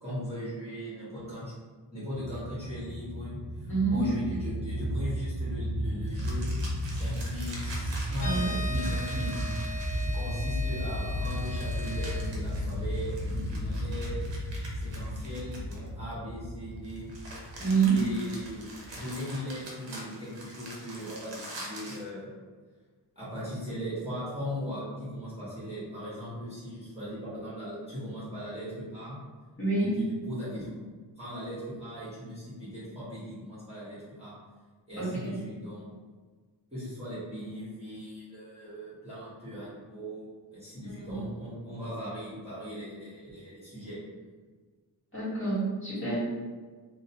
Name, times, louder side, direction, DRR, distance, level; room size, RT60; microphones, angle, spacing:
voice 1, 0.0-1.5 1.9-3.4 3.9-6.5 6.9-9.4 10.0-14.3 14.8-17.1 17.9-18.7 19.0-22.3 23.1-29.1 29.7-30.7 31.2-34.4 34.9-35.9 36.7-44.0, equal, 15° right, -11 dB, 1.2 m, -39 dB
sound 1, 2.1-19.1, equal, 50° right, 0.5 m, -34 dB
voice 2, 3.7-4.0 8.2-8.5 17.6-17.9 29.6-29.9 35.0-35.4 41.0-41.1 45.1-46.2, right 4 dB, 30° left, -10 dB, 1.3 m, -27 dB
sound 2, 6.1-10.4 11.2-16.1 16.8-22.1, right 1 dB, 80° right, 0.7 m, -45 dB
sound 3, 8.2-12.2, left 2 dB, 50° left, 0.9 m, -39 dB
2.7 x 2.1 x 2.8 m, 1.4 s
wide cardioid pair, 115°, 43 cm